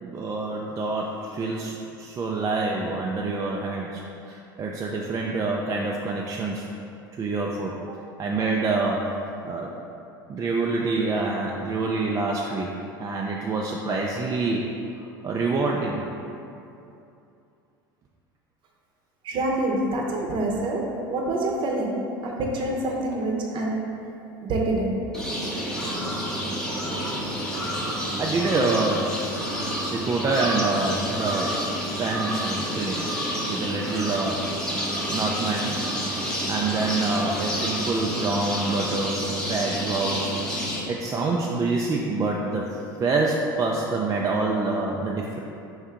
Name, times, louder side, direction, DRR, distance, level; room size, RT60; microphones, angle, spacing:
voice 1, 0.0-6.7 7.1-9.1 9.4-9.7 10.3-14.7 15.2-16.1 27.9-29.2 29.9-31.6 32.0-33.1 33.5-34.4 35.1-35.8 36.5-39.2 39.5-40.3 40.9-45.4, right 3 dB, 30° right, -1 dB, 0.3 m, -26 dB
voice 2, 19.2-21.9 22.2-23.8 24.4-25.0, right 2 dB, 45° right, -1 dB, 0.8 m, -26 dB
sound 1, 25.1-40.8, equal, 5° left, 0.8 m, -29 dB
4.4 x 2.7 x 3.6 m, 2.7 s
hypercardioid pair, 85°, 11 cm